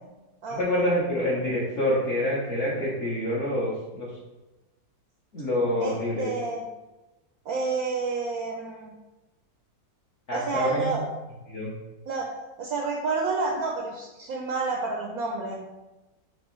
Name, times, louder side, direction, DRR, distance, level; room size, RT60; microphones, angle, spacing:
voice 1, 0.5-4.1 5.3-6.3 10.3-11.0 11.5-11.7, left 1 dB, 50° left, -7 dB, 1.1 m, -26 dB
voice 2, 5.8-6.6 7.5-8.9 10.3-11.0 12.1-12.3 12.6-15.7, right 3 dB, 70° right, 0 dB, 1.0 m, -29 dB
5.2 x 3.2 x 3.1 m, 1.1 s
omnidirectional pair, 1.9 m